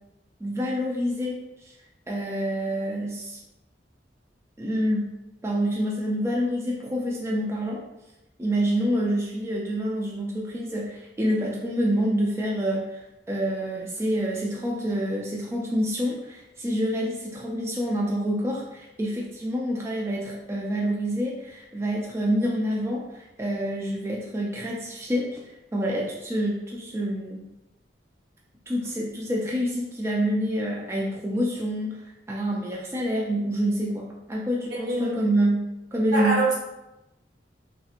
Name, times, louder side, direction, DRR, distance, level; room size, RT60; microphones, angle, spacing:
voice 1, 0.4-1.4 1.6-1.7 2.1-3.4 4.6-5.1 5.4-7.8 8.4-13.0 13.3-25.4 25.7-27.4 28.7-35.6 35.9-36.4, equal, 15° right, -3 dB, 0.3 m, -27 dB
voice 2, 34.7-35.2 36.1-36.6, right 3 dB, 70° right, -5 dB, 1.1 m, -25 dB
3.1 x 2.8 x 2.4 m, 0.96 s
head